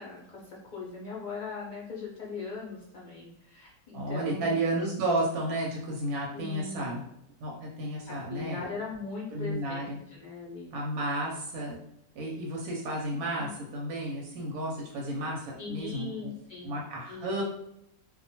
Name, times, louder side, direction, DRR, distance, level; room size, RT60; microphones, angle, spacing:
voice 1, 0.0-4.6 6.3-7.0 8.1-10.7 13.1-13.5 15.6-16.7 17.1-17.3, left 4 dB, 60° left, -4 dB, 0.5 m, -40 dB
voice 2, 3.9-7.0 7.4-8.7 9.3-10.0 10.7-11.8 12.1-16.3 16.6-17.4, right 1 dB, 85° right, -2 dB, 1.1 m, -32 dB
2.4 x 2.1 x 2.7 m, 0.78 s
omnidirectional pair, 1.5 m